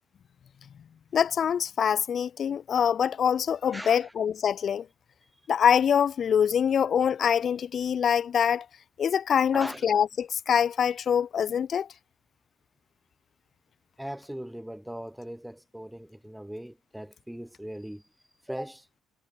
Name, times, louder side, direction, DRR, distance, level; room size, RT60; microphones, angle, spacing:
voice 1, 1.1-4.8 5.5-8.6 9.0-11.9, left 8 dB, 40° left, 2.9 m, -24 dB
voice 2, 3.7-4.1 9.5-9.9 14.0-18.0 18.5-18.9, equal, ahead, 7.0 m, -39 dB
cardioid pair, 165°, 0 cm